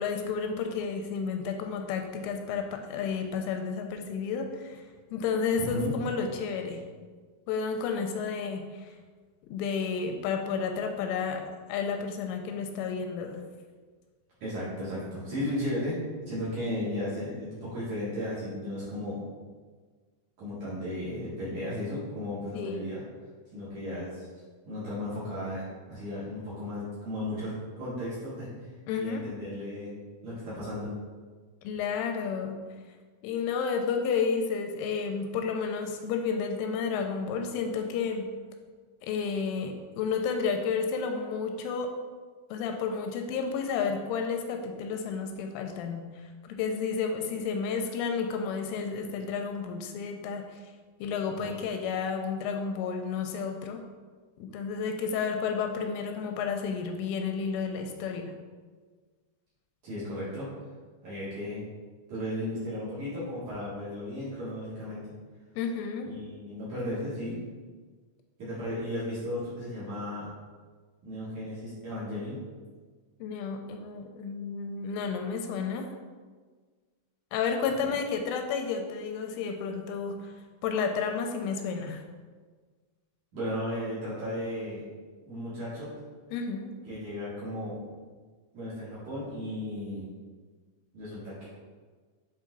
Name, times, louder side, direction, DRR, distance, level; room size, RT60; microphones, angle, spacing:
voice 1, 0.0-4.8 5.1-6.8 7.5-8.9 9.5-11.4 11.7-13.4 22.5-22.9 28.9-29.2 31.6-32.6 33.2-38.3 39.0-41.9 42.5-46.0 46.4-50.4 51.0-53.8 54.4-58.3 65.6-66.1 73.2-75.9 77.3-80.3 80.6-82.0 86.3-86.7, left 5 dB, 85° left, 4 dB, 3.0 m, -31 dB
voice 2, 5.6-5.9 14.4-16.0 16.3-19.2 20.4-23.0 23.5-24.3 24.6-28.5 29.0-29.9 30.2-30.9 51.4-51.6 59.8-60.5 61.0-61.6 62.1-65.0 66.1-67.4 68.4-70.3 71.0-72.4 77.8-77.9 83.3-84.8 85.2-85.9 86.8-87.8 88.5-90.0 90.9-91.4, left 1 dB, 50° right, -11 dB, 2.7 m, -35 dB
8.3 x 4.3 x 3.9 m, 1.5 s
omnidirectional pair, 5.7 m